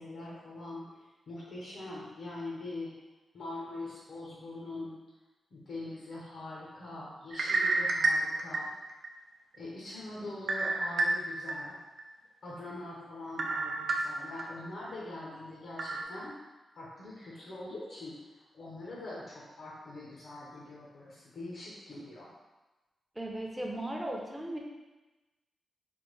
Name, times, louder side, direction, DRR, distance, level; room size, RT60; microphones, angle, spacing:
voice 1, 0.0-2.9 3.3-5.0 5.5-8.7 9.5-11.8 12.4-16.4 16.7-18.1 18.5-22.3, left 2 dB, 75° left, -6 dB, 0.8 m, -43 dB
sound 1, 7.3-9.1 9.5-9.6 10.5-11.5 12.0-12.1 13.4-14.4 14.9-15.0 15.8-16.0, right 2 dB, 75° right, 0.4 m, -29 dB
voice 2, 23.2-24.6, right 1 dB, 10° right, -1 dB, 0.5 m, -36 dB
3.4 x 2.2 x 3.2 m, 1.1 s
wide cardioid pair, 105°, 0 cm